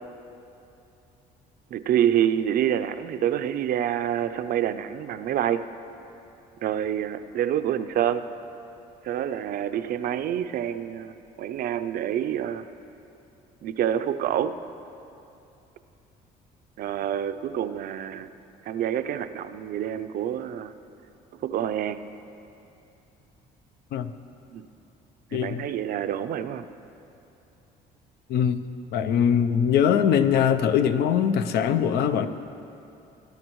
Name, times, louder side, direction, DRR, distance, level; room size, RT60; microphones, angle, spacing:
voice 1, 1.7-5.7 6.6-8.3 9.0-12.7 13.6-14.6 16.8-18.3 18.7-20.7 21.4-22.0 24.5-24.7 25.3-26.6, right 10 dB, 60° right, 11 dB, 0.5 m, -27 dB
voice 2, 25.3-25.6 28.3-28.6 28.9-32.3, left 8 dB, 70° left, 10 dB, 0.6 m, -22 dB
19.5 x 10.5 x 3.1 m, 2.8 s
cardioid pair, 110°, 17 cm